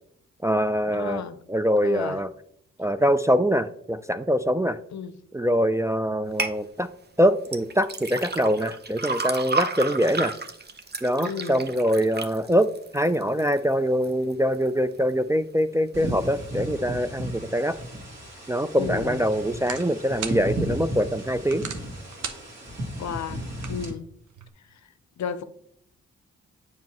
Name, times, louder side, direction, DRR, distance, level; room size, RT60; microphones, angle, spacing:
voice 1, 0.4-1.2 1.5-2.3 2.8-4.8 5.3-6.9 7.2-10.3 11.0-12.7 12.9-17.8 18.5-21.7, equal, 10° right, 0.3 m, -23 dB
voice 2, 0.9-1.4 1.8-2.2 4.9-5.1 11.2-11.6 16.0-16.3 18.8-19.2 23.0-23.4 23.7-24.1 25.2-25.4, left 7 dB, 60° left, 0.6 m, -33 dB
sound 1, 6.4-6.6 7.5-13.6 14.0-14.6 15.0-15.1, right 3 dB, 35° right, 0.7 m, -31 dB
sound 2, 15.9-23.9, equal, 55° right, 2.0 m, -34 dB
sound 3, 18.4-24.5, right 6 dB, 70° right, 0.8 m, -42 dB
7.2 x 5.2 x 3.0 m
supercardioid pair, 40°, 31 cm